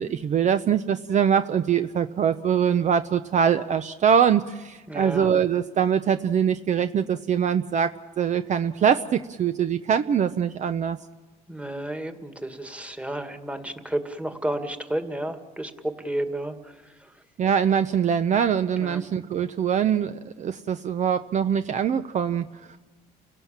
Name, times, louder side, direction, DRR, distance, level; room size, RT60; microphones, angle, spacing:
voice 1, 0.0-7.9 8.2-11.0 17.4-22.8, right 8 dB, 45° right, 11 dB, 0.7 m, -23 dB
voice 2, 4.9-5.3 11.5-17.1 18.8-19.0, right 1 dB, 5° right, 8 dB, 1.9 m, -32 dB
29.5 x 17.5 x 7.4 m, 1.2 s
cardioid pair, 110°, 17 cm